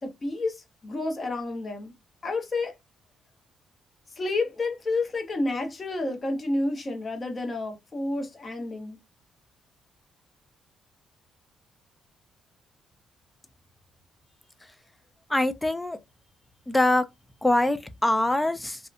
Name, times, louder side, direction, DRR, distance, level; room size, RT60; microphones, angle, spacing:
voice 1, 0.0-1.9 2.2-2.7 4.2-9.0, left 2 dB, 35° left, 0.9 m, -30 dB
voice 2, 15.3-16.0 16.7-17.0 17.4-18.8, left 1 dB, 10° left, 0.4 m, -23 dB
2.7 x 2.2 x 2.4 m
cardioid pair, 90°, 0 cm